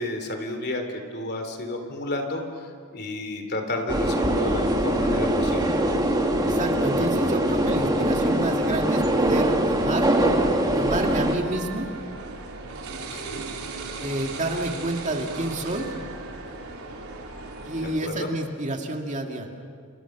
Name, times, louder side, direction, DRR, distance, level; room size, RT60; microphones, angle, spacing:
voice 1, 0.0-2.7 2.9-5.7 13.1-13.4 17.8-18.3, left 1 dB, 50° left, 5 dB, 3.3 m, -31 dB
sound 1, 3.9-11.4, right 1 dB, 20° right, 2.2 m, -22 dB
voice 2, 6.4-10.1 10.7-11.9 14.0-15.9 17.6-19.5, right 1 dB, 35° right, 2 dB, 2.4 m, -29 dB
sound 2, 11.0-18.0, right 3 dB, 85° right, 3.8 m, -37 dB
29.5 x 29.5 x 6.2 m, 2.1 s
head